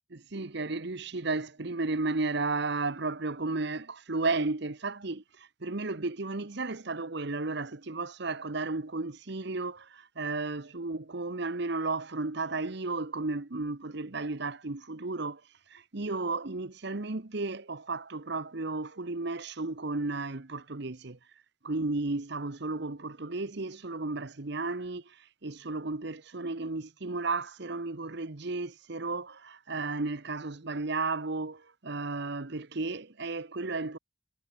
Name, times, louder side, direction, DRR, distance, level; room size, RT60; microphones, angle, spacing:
voice 1, 0.1-15.4 15.7-21.2 21.6-25.2 25.4-34.0, right 3 dB, 55° right, 1.1 m, -33 dB
head